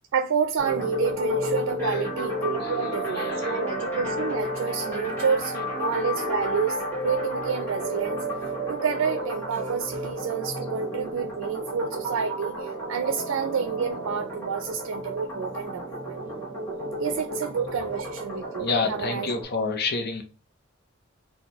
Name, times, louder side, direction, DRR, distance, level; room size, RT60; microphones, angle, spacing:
voice 1, 0.1-8.2 8.7-16.2 17.0-19.3, right 6 dB, 90° right, 0.4 m, -29 dB
sound 1, 0.6-19.4, equal, 10° left, 1.4 m, -31 dB
voice 2, 2.6-3.6 5.5-5.6 17.3-17.5 17.8-17.9 18.6-20.2, left 4 dB, 50° left, 0.6 m, -30 dB
4.3 x 2.2 x 2.9 m
head